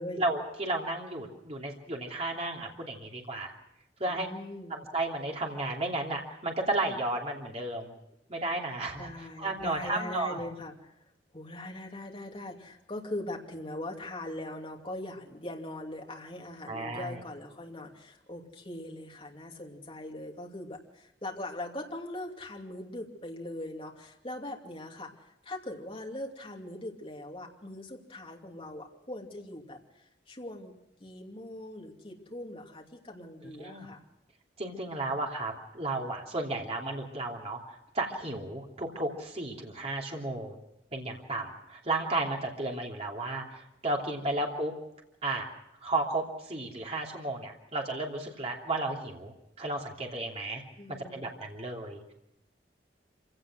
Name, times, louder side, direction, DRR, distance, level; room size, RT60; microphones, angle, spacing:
voice 1, 0.1-3.5 4.0-4.3 4.7-7.9 8.3-10.4 16.7-17.1 33.6-33.9 34.6-40.6 40.9-44.7 45.2-45.5 45.8-50.6 51.1-52.1, right 2 dB, 35° right, 0 dB, 3.0 m, -33 dB
voice 2, 4.1-4.8 9.0-10.9 11.3-30.7 31.0-34.0 50.8-51.4, left 1 dB, 30° left, 1 dB, 2.8 m, -41 dB
26.5 x 17.0 x 6.2 m, 0.85 s
head